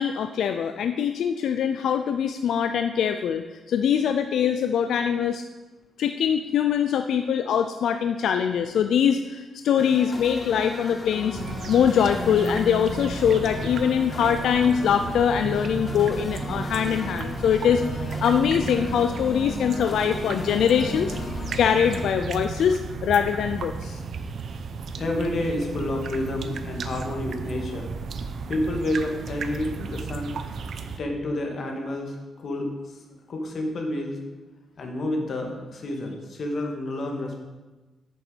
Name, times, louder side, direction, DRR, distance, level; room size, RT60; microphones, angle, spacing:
voice 1, 0.0-5.4 6.0-11.4 11.7-21.1 21.6-24.0, left 8 dB, 75° left, 8 dB, 0.5 m, -23 dB
sound 1, 9.8-22.1, left 3 dB, 25° left, 1.1 m, -35 dB
sound 2, 11.3-31.0, right 5 dB, 50° right, 0.8 m, -34 dB
voice 2, 25.0-27.9 28.5-30.4 31.0-32.7 33.3-34.2 34.8-37.4, left 1 dB, 45° left, 2 dB, 2.1 m, -29 dB
9.3 x 7.0 x 8.0 m, 1.2 s
wide cardioid pair, 160°, 0 cm